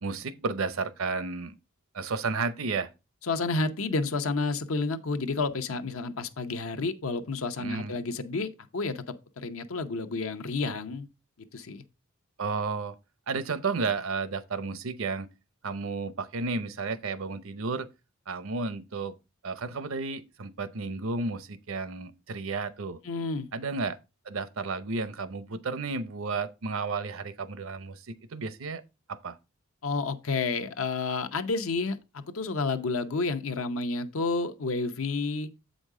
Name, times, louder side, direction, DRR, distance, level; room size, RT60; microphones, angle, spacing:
voice 1, 0.0-1.6 1.9-2.9 7.6-7.9 12.4-12.9 13.3-15.3 15.6-17.9 18.3-19.1 19.4-23.0 23.5-24.0 24.3-28.8 29.1-29.4, right 4 dB, 70° right, 0.7 m, -32 dB
voice 2, 3.2-11.1 11.5-11.8 23.0-23.5 29.8-35.5, left 3 dB, 75° left, 0.8 m, -30 dB
8.1 x 5.2 x 3.7 m
head